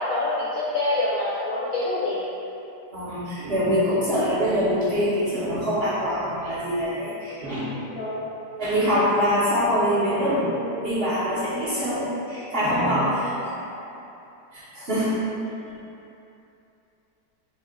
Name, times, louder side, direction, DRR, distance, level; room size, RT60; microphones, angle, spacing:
voice 1, 0.0-2.2 7.9-8.2 13.4-13.5, left 2 dB, 65° left, -8 dB, 0.9 m, -26 dB
voice 2, 2.9-7.7 8.6-13.3 14.5-15.1, equal, 40° right, -13 dB, 1.0 m, -24 dB
4.5 x 2.3 x 3.5 m, 2.8 s
omnidirectional pair, 1.9 m